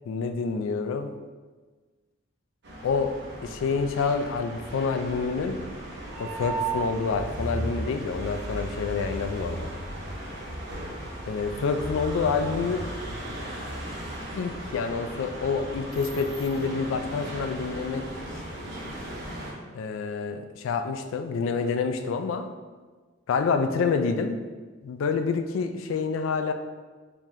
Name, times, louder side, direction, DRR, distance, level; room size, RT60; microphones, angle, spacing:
voice 1, 0.1-1.2 2.8-3.1 3.4-5.7 6.2-9.7 11.3-12.9 14.3-18.1 19.7-22.5 23.3-24.4 24.8-26.5, left 5 dB, 70° left, 7 dB, 0.3 m, -27 dB
sound 1, 2.6-19.5, right 1 dB, 60° right, 0.8 m, -36 dB
3.6 x 2.8 x 3.1 m, 1.4 s
head